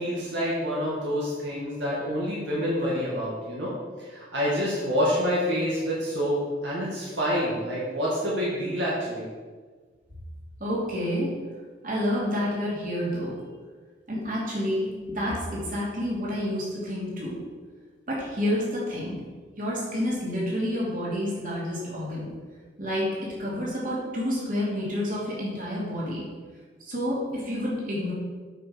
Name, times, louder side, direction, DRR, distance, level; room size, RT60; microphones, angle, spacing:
voice 1, 0.0-3.7 4.0-9.3, equal, 75° right, -6 dB, 2.0 m, -27 dB
voice 2, 10.6-11.3 11.8-13.3 14.1-17.4 18.1-19.2 19.6-22.3 22.8-23.1 23.4-26.2 26.8-28.1, equal, 45° right, -6 dB, 2.8 m, -29 dB
8.7 x 5.3 x 5.2 m, 1.5 s
head